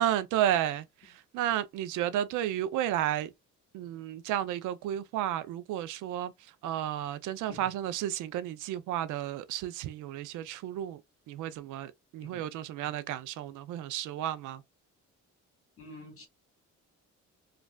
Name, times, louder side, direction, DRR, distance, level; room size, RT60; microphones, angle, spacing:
voice 1, 0.0-3.3 3.7-6.3 6.6-11.0 11.3-14.6, right 12 dB, 90° right, 0.5 m, -32 dB
voice 2, 15.8-16.3, left 2 dB, 45° left, 1.5 m, -48 dB
3.2 x 2.4 x 2.3 m
cardioid pair, 90°, 30 cm